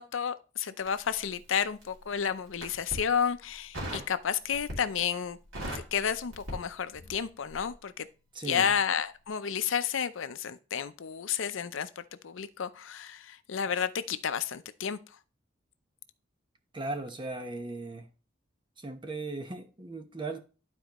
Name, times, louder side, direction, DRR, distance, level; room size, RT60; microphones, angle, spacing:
voice 1, 0.0-5.4 5.7-8.1 8.4-15.2, left 7 dB, 75° left, 0.5 m, -31 dB
Crackle, 0.8-1.9 2.5-3.1 3.7-4.1 4.5-5.0 5.3-7.2 7.5-7.7, equal, 85° right, 2.9 m, -39 dB
voice 2, 8.3-8.7 16.7-18.1 18.8-20.4, right 2 dB, 25° right, 0.9 m, -37 dB
11.5 x 4.4 x 3.0 m
head